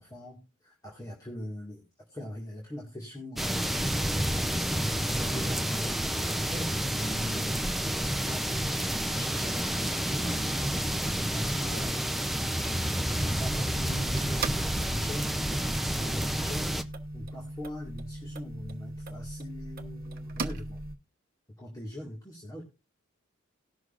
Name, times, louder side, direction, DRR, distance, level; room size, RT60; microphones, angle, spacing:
voice 1, 0.0-4.3 4.9-8.6 9.1-10.7 11.0-12.3 13.2-15.3 15.9-16.7 17.1-20.8 21.6-22.6, equal, 20° left, -2 dB, 1.9 m, -41 dB
sound 1, 3.4-16.8, equal, ahead, 0.6 m, -30 dB
sound 2, 13.1-21.0, right 2 dB, 50° right, 1.0 m, -38 dB
18.5 x 6.2 x 2.5 m, 0.28 s
head